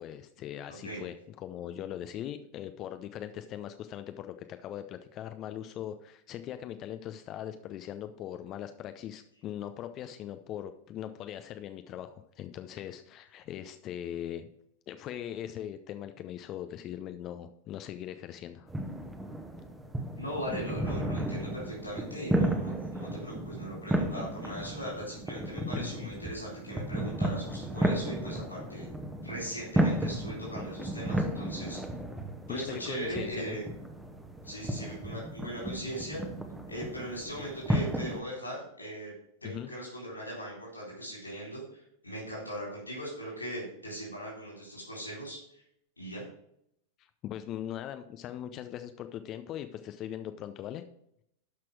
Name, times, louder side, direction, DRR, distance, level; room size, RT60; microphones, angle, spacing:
voice 1, 0.0-14.5 14.9-18.7 25.7-26.1 32.5-33.6 39.4-39.7 47.0-50.8, left 11 dB, 35° left, 9 dB, 0.6 m, -40 dB
sound 1, 18.7-38.2, right 1 dB, 5° right, 1.2 m, -34 dB
voice 2, 20.2-28.9 29.2-31.8 32.5-33.6 34.4-36.2 36.7-39.1 39.4-45.6 46.0-46.2, right 1 dB, 85° left, -4 dB, 3.9 m, -39 dB
12.0 x 6.0 x 4.7 m, 0.74 s
figure-of-eight pair, 90°, 0 cm